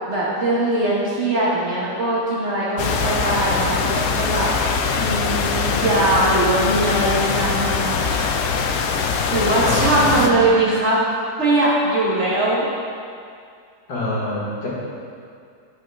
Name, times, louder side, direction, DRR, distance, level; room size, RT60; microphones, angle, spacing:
voice 1, 0.1-8.0 9.3-11.1 11.4-12.7, right 2 dB, 45° right, -7 dB, 1.3 m, -21 dB
sound 1, 2.8-10.3, left 5 dB, 90° left, 0.6 m, -22 dB
voice 2, 9.6-10.3 13.9-14.7, left 1 dB, 65° left, -6 dB, 2.0 m, -25 dB
9.1 x 5.3 x 3.4 m, 2.3 s
omnidirectional pair, 1.9 m